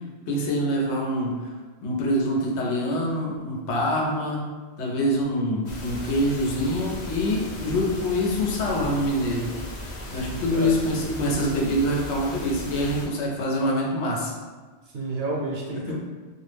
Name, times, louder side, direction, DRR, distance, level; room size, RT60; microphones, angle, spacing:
voice 1, 0.3-1.3 1.8-4.5 4.8-9.5 10.1-14.3 15.9-16.0, equal, 90° left, -2 dB, 0.9 m, -25 dB
sound 1, 5.7-13.1, left 1 dB, 55° left, 0.5 m, -37 dB
voice 2, 10.1-10.7 14.9-15.9, right 3 dB, 70° right, -3 dB, 0.8 m, -31 dB
2.3 x 2.0 x 3.2 m, 1.4 s
omnidirectional pair, 1.1 m